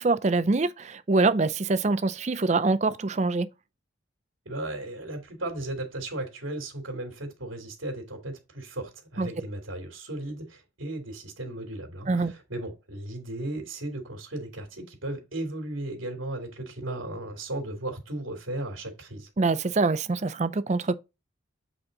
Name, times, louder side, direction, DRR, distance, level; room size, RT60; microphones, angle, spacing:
voice 1, 0.0-3.5 9.2-9.3 12.1-12.3 19.4-20.9, right 3 dB, 35° right, 0.5 m, -24 dB
voice 2, 4.4-19.3, right 1 dB, 90° right, 2.5 m, -36 dB
7.7 x 4.4 x 3.9 m
head